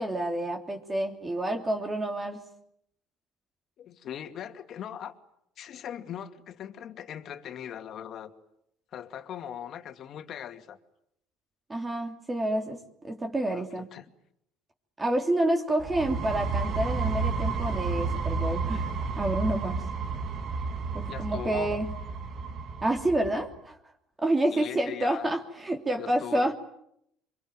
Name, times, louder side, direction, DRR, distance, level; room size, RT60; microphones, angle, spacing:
voice 1, 0.0-2.4 11.7-13.9 15.0-18.9 19.2-19.8 20.9-21.9 22.8-23.8 24.2-26.5, right 1 dB, 20° right, 4 dB, 3.0 m, -28 dB
voice 2, 3.8-5.1 5.6-8.3 8.9-10.8 13.5-14.1 21.1-21.8 24.5-25.3 26.0-26.5, left 9 dB, 55° left, 8 dB, 2.5 m, -40 dB
sound 1, 15.8-23.4, right 4 dB, 50° right, 2.5 m, -31 dB
25.0 x 23.5 x 9.2 m, 0.75 s
supercardioid pair, 100°, 0 cm